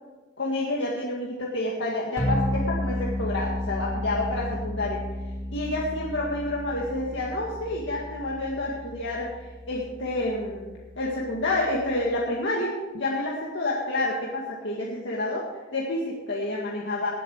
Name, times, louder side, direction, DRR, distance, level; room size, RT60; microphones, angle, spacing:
voice 1, 0.4-5.0 5.5-15.5 15.7-17.2, left 2 dB, 65° left, -4 dB, 2.0 m, -29 dB
sound 1, 2.2-12.2, left 1 dB, 15° left, 3.8 m, -33 dB
19.0 x 7.7 x 5.0 m, 1.2 s
head